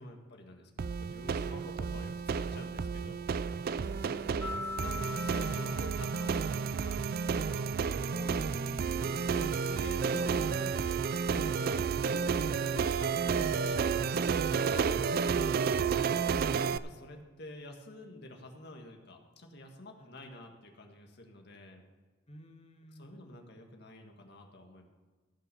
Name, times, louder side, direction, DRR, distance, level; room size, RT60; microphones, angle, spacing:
voice 1, 0.0-3.3 4.3-7.7 8.9-15.5 16.6-21.8 22.9-24.9, left 1 dB, 60° left, 3 dB, 1.7 m, -49 dB
sound 1, 0.8-16.8, right 6 dB, 50° right, 0.4 m, -31 dB
voice 2, 3.8-4.4 8.1-8.9 15.9-16.6 20.0-20.1 22.3-23.2, left 1 dB, 35° left, 5 dB, 1.3 m, -52 dB
sound 2, 4.4-7.2, left 4 dB, 15° left, 0.8 m, -42 dB
15.0 x 5.7 x 6.9 m, 1.3 s
head